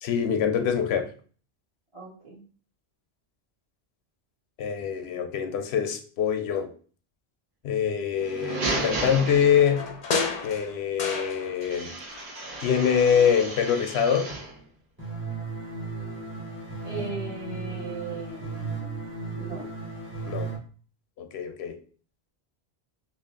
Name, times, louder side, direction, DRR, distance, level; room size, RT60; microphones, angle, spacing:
voice 1, 0.0-1.1 4.6-6.7 7.6-9.8 10.4-12.0 12.6-14.3 20.3-20.5 21.2-21.8, left 7 dB, 85° left, 7 dB, 0.8 m, -24 dB
voice 2, 1.9-2.4 16.8-19.0 19.3-19.7, right 3 dB, 30° right, -6 dB, 1.7 m, -37 dB
sound 1, 8.1-10.0 11.6-14.6, right 2 dB, 55° right, 1.0 m, -33 dB
sound 2, 9.4-11.9 12.1-13.2 13.5-13.6, left 4 dB, 50° left, 0.7 m, -32 dB
sound 3, 15.0-20.6, right 4 dB, 10° right, 1.1 m, -35 dB
3.2 x 2.4 x 3.6 m, 0.41 s
omnidirectional pair, 1.1 m